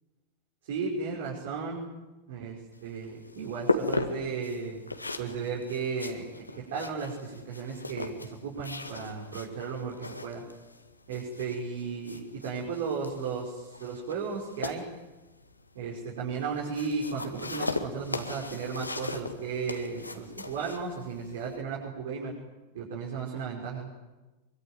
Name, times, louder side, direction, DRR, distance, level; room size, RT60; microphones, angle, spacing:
voice 1, 0.6-1.8 2.3-4.8 5.2-6.3 6.6-10.4 11.1-14.8 15.8-22.3 22.7-23.9, right 5 dB, 55° right, -3 dB, 5.8 m, -35 dB
sound 1, 2.7-21.6, left 3 dB, 80° left, 2.0 m, -38 dB
24.5 x 24.0 x 9.4 m, 1.1 s
figure-of-eight pair, 90°, 0 cm